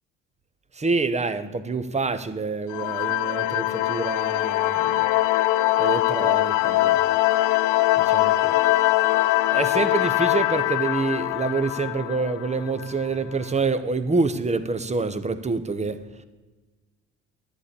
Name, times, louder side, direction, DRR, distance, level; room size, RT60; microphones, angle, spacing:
voice 1, 0.8-4.9 5.8-7.0 8.1-8.6 9.5-16.0, right 4 dB, 20° right, 12 dB, 1.0 m, -27 dB
sound 1, 2.7-13.1, left 16 dB, 65° left, 0.6 m, -22 dB
11.0 x 8.3 x 6.8 m, 1.2 s
hypercardioid pair, 60°, 34 cm